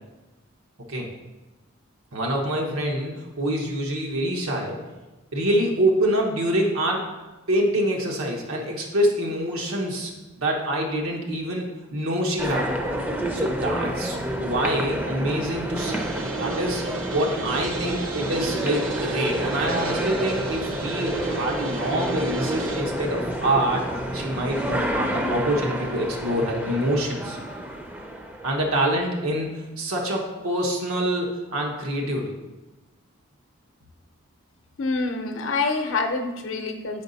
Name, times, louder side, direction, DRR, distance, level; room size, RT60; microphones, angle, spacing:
voice 1, 2.1-4.8 5.3-7.1 7.5-10.1 10.4-12.7 13.3-16.0 16.4-23.9 24.1-27.4 28.4-29.5 29.8-32.3, right 1 dB, 85° right, 0 dB, 1.1 m, -26 dB
sound 1, 12.4-29.0, equal, 10° right, 0.5 m, -29 dB
sound 2, 15.8-22.8, right 5 dB, 65° right, 0.8 m, -34 dB
voice 2, 34.8-37.0, left 3 dB, 65° left, 5 dB, 0.7 m, -26 dB
7.1 x 4.9 x 4.0 m, 1.1 s
head